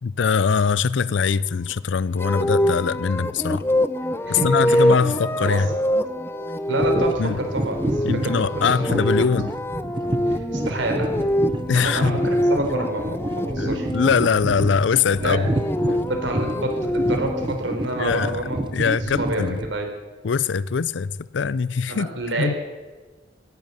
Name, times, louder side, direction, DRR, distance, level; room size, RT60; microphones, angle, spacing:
voice 1, 0.0-3.6 4.4-5.7 7.2-7.4 8.1-9.5 11.7-12.2 13.6-15.4 18.0-18.4 18.7-19.6 20.2-22.1 22.4-22.5, left 5 dB, 80° left, 0.5 m, -22 dB
sound 1, 2.2-14.1 15.2-17.5, equal, 15° left, 0.5 m, -25 dB
voice 2, 4.2-5.7 6.7-9.2 10.3-11.1 11.7-13.9 15.2-15.4 15.8-18.6 19.0-19.9 21.9-22.6, right 1 dB, 85° right, 3.8 m, -28 dB
sound 2, 6.8-19.7, right 1 dB, 25° right, 0.6 m, -29 dB
16.5 x 10.5 x 8.2 m
head